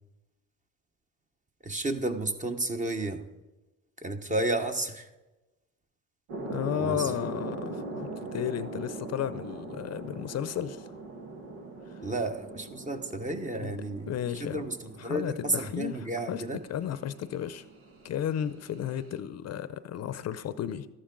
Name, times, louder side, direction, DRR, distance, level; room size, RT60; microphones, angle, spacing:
voice 1, 1.6-3.3 4.0-5.1 6.8-7.1 12.0-16.6, right 2 dB, 20° right, 7 dB, 1.1 m, -32 dB
sound 1, 6.3-19.2, right 2 dB, 90° right, 1.7 m, -41 dB
voice 2, 6.5-10.9 11.9-12.0 13.6-13.8 14.1-14.6 15.0-16.0 16.3-16.4 16.7-17.7 18.0-20.9, left 10 dB, 50° left, 14 dB, 0.7 m, -33 dB
13.5 x 11.5 x 3.9 m, 1.1 s
cardioid pair, 100°, 34 cm